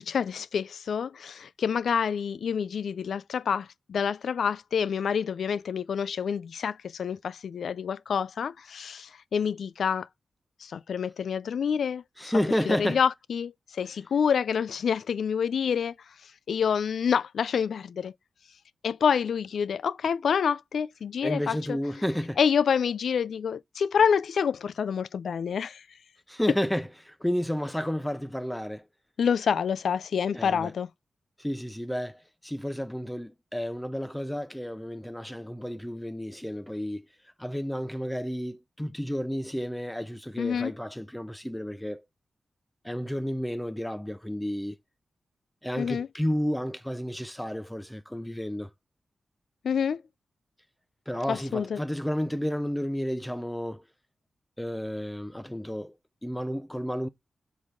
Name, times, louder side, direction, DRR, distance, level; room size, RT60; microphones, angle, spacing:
voice 1, 0.0-10.1 10.6-12.0 12.7-16.0 16.2-18.1 18.8-21.8 22.4-25.8 29.2-30.9 40.4-40.7 45.8-46.1 49.6-50.0 51.3-51.8, left 7 dB, 85° left, 0.3 m, -27 dB
voice 2, 12.2-13.0 21.2-22.4 26.3-28.9 30.3-30.7 31.4-37.0 37.4-42.0 42.8-44.8 45.6-48.7 51.1-53.8 54.6-55.9 56.2-57.1, equal, 5° left, 0.5 m, -31 dB
7.2 x 3.9 x 3.5 m
wide cardioid pair, 95°, 0 cm